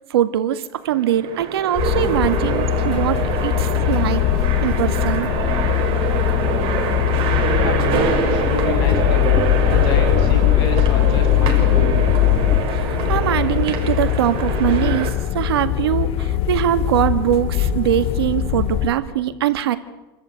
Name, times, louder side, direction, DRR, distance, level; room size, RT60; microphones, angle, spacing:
voice 1, 0.1-4.2 4.6-5.3 12.7-19.8, right 11 dB, 85° right, 11 dB, 1.9 m, -22 dB
sound 1, 0.8-15.1, right 6 dB, 45° right, 5.6 m, -25 dB
sound 2, 1.8-18.9, left 12 dB, 50° left, 2.7 m, -22 dB
sound 3, 2.0-12.6, left 13 dB, 30° left, 2.0 m, -22 dB
voice 2, 7.5-9.3 9.7-12.0, left 2 dB, 75° left, 5 dB, 7.7 m, -27 dB
28.5 x 13.5 x 9.2 m, 1.0 s
supercardioid pair, 110°, 13 cm